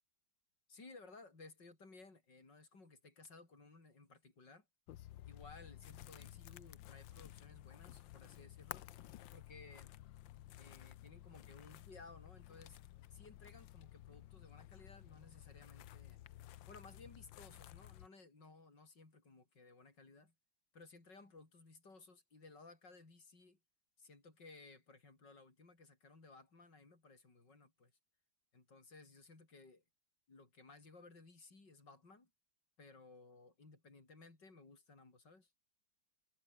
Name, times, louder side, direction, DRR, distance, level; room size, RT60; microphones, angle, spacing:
voice 1, 0.7-4.7 5.2-8.9 9.3-9.9 10.6-12.8 13.1-16.2 16.7-20.3 20.7-23.6 24.0-27.9 28.5-29.8 30.3-32.3 32.8-35.5, left 3 dB, 65° left, 5.9 m, -59 dB
sound 1, 4.9-18.1, left 14 dB, 80° left, 1.5 m, -54 dB
omnidirectional pair, 2.0 m